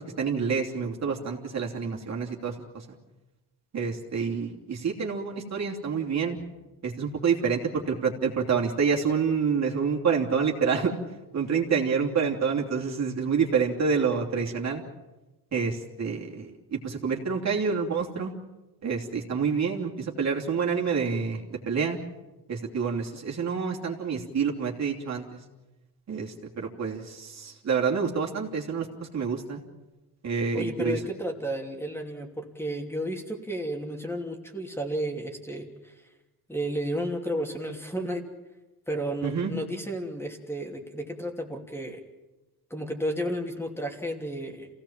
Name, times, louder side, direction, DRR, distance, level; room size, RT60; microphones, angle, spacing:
voice 1, 0.2-2.8 3.7-6.4 6.8-10.9 11.3-14.8 15.5-18.3 18.8-22.0 22.5-25.4 26.1-29.6 30.2-31.0 39.2-39.5, right 6 dB, 45° right, -1 dB, 3.0 m, -28 dB
voice 2, 30.5-35.9 36.5-38.2 38.9-42.0 42.7-44.7, equal, 5° left, 2 dB, 2.9 m, -32 dB
27.0 x 17.0 x 7.4 m, 1.1 s
cardioid pair, 115°, 38 cm